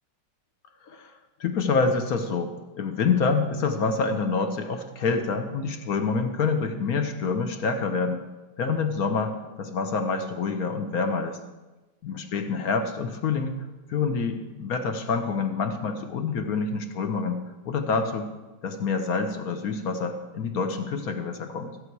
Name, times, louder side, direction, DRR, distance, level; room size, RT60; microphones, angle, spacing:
voice 1, 1.4-8.2 8.6-11.4 12.0-13.6 13.9-18.3 18.6-21.7, left 4 dB, 55° left, 6 dB, 1.2 m, -27 dB
14.5 x 8.4 x 4.7 m, 1.1 s
omnidirectional pair, 2.3 m